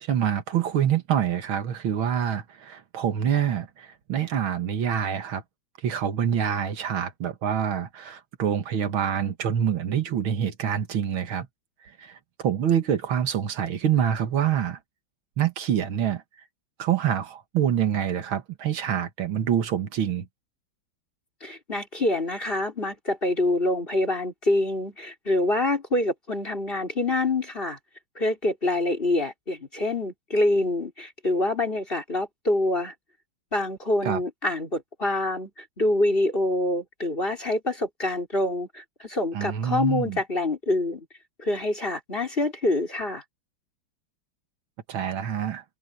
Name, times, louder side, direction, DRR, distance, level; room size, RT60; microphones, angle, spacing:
voice 1, 0.0-5.4 5.8-11.5 12.0-14.8 15.4-16.2 16.8-20.3 34.1-34.2 39.3-40.2 44.9-45.6, right 9 dB, 85° right, 2.3 m, -26 dB
voice 2, 21.4-27.8 28.2-32.9 33.5-41.1 41.4-43.2, left 2 dB, 25° left, 4.5 m, -26 dB
omnidirectional pair, 2.2 m